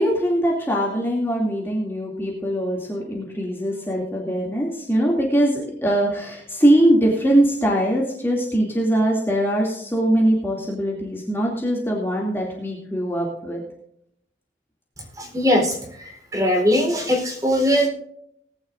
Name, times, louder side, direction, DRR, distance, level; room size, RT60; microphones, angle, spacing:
voice 1, 0.0-13.6, right 1 dB, 10° left, -3 dB, 2.6 m, -21 dB
voice 2, 15.2-17.9, equal, 20° right, 1 dB, 3.9 m, -21 dB
19.5 x 11.0 x 2.6 m, 0.71 s
head